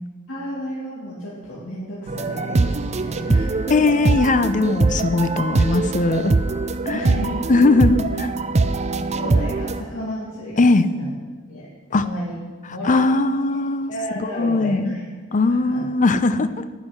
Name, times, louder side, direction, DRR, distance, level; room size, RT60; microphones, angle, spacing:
voice 1, 0.3-3.8 6.8-7.4 8.9-11.1 11.5-12.4 12.7-13.1 13.9-15.0 15.3-15.8, equal, 65° left, -7 dB, 2.4 m, -32 dB
sound 1, 2.1-9.8, right 3 dB, 30° right, 0.5 m, -22 dB
Alarm, 2.2-2.7 3.2-3.7 4.2-4.7 5.2-5.7 6.2-6.7, left 1 dB, 10° right, 3.4 m, -43 dB
voice 2, 3.7-6.3 6.9-7.0 7.5-8.3 10.6-10.9 11.9-12.0 12.8-15.0 15.3-16.6, left 3 dB, 35° left, 12 dB, 0.6 m, -19 dB
9.8 x 9.6 x 5.9 m, 1.4 s
head